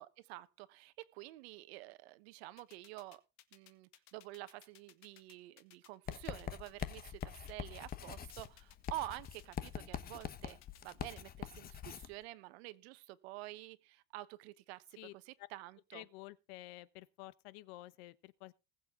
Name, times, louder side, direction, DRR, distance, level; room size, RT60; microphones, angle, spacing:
voice 1, 0.0-3.2 3.5-16.0, right 17 dB, 85° right, 1.3 m, -49 dB
sound 1, 2.6-11.2, left 14 dB, 60° left, 1.8 m, -61 dB
Writing, 6.1-12.1, left 9 dB, 30° left, 1.1 m, -44 dB
voice 2, 15.9-18.5, left 17 dB, 75° left, 1.1 m, -51 dB
20.0 x 7.6 x 3.7 m
cardioid pair, 140°, 31 cm